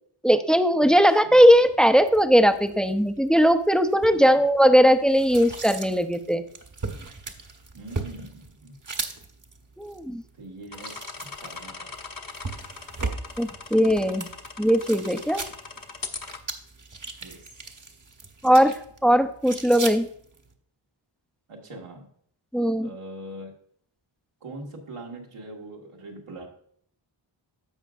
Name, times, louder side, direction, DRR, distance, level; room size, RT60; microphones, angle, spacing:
voice 1, 0.2-6.4 9.8-10.2 13.4-14.3 14.6-15.4 18.4-18.7 19.0-20.1 22.5-22.9, equal, ahead, 9 dB, 0.6 m, -19 dB
sound 1, 1.5-20.5, right 3 dB, 40° right, 1.1 m, -39 dB
voice 2, 7.7-8.8 10.3-10.9 11.2-11.9 17.2-17.9 21.5-22.1 22.8-23.5 24.4-26.5, right 1 dB, 85° right, -1 dB, 2.0 m, -42 dB
sound 2, 10.7-16.4, left 4 dB, 40° left, 1.1 m, -40 dB
15.0 x 5.1 x 2.5 m, 0.63 s
wide cardioid pair, 75°, 50 cm